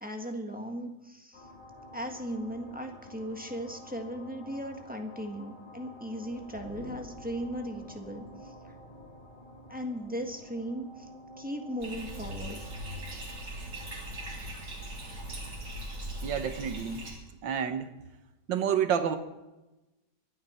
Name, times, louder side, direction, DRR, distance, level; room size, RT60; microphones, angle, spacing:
voice 1, 0.0-1.4 1.9-8.7 9.7-11.1 11.4-12.6, equal, 5° right, 3 dB, 1.3 m, -37 dB
sound 1, 1.3-15.5, left 1 dB, 25° left, 2.0 m, -50 dB
Bathtub (filling or washing), 11.8-17.1, right 1 dB, 55° right, 4.0 m, -40 dB
voice 2, 16.2-17.0 17.4-17.9 18.5-19.2, right 8 dB, 90° right, 9 dB, 1.8 m, -29 dB
25.0 x 9.3 x 4.4 m, 1.0 s
omnidirectional pair, 1.9 m